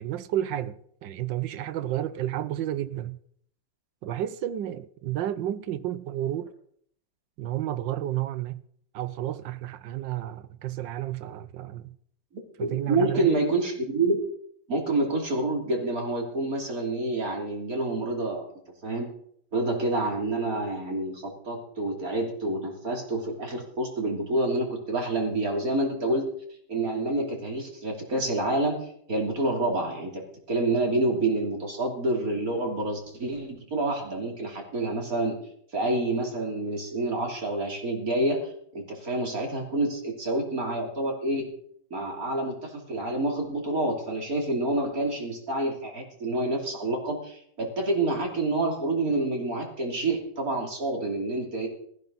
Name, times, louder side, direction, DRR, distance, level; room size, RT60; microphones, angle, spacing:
voice 1, 0.0-3.2 4.0-6.5 7.4-8.6 8.9-11.9 12.6-13.4, right 12 dB, 75° right, 1.4 m, -31 dB
voice 2, 12.6-14.2 14.7-18.4 18.8-19.1 19.5-26.2 26.7-30.2 30.5-35.4 35.7-41.5 41.9-51.7, right 2 dB, 50° right, 3.6 m, -28 dB
16.5 x 15.0 x 4.1 m
omnidirectional pair, 2.0 m